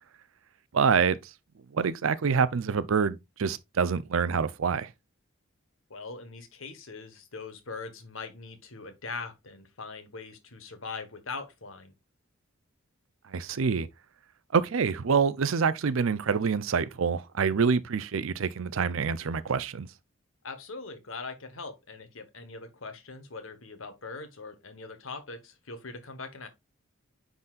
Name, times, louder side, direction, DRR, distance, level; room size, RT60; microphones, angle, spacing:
voice 1, 0.7-1.2 1.7-4.9 13.3-13.9 14.5-19.9, right 5 dB, 80° right, 0.5 m, -26 dB
voice 2, 5.9-11.9 20.4-26.5, left 4 dB, 75° left, 1.4 m, -41 dB
9.5 x 4.0 x 2.4 m
head